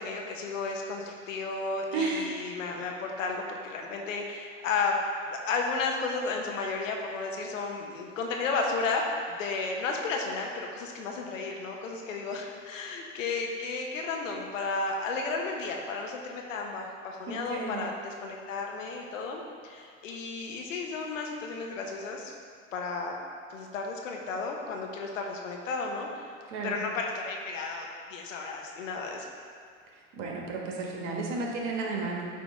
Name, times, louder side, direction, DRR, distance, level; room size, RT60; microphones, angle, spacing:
voice 1, 0.0-4.9 5.3-9.0 9.3-22.3 22.7-23.1 23.5-26.3 26.6-29.3, left 4 dB, 90° left, 1 dB, 1.0 m, -33 dB
voice 2, 1.9-2.4 17.3-17.9 26.5-26.8 30.2-32.3, right 3 dB, 70° right, -1 dB, 1.4 m, -33 dB
8.4 x 2.9 x 4.8 m, 2.2 s
hypercardioid pair, 90°, 38 cm